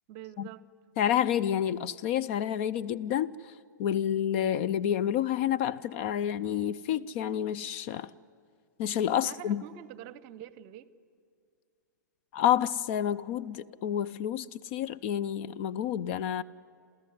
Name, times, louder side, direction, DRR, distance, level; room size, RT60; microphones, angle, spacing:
voice 1, 0.1-0.7 9.2-10.9, right 11 dB, 35° right, 18 dB, 0.8 m, -45 dB
voice 2, 1.0-3.5 3.8-8.1 8.8-9.6 12.3-16.4, left 10 dB, 35° left, 14 dB, 0.5 m, -29 dB
29.0 x 13.5 x 9.7 m, 2.3 s
figure-of-eight pair, 105°, 10 cm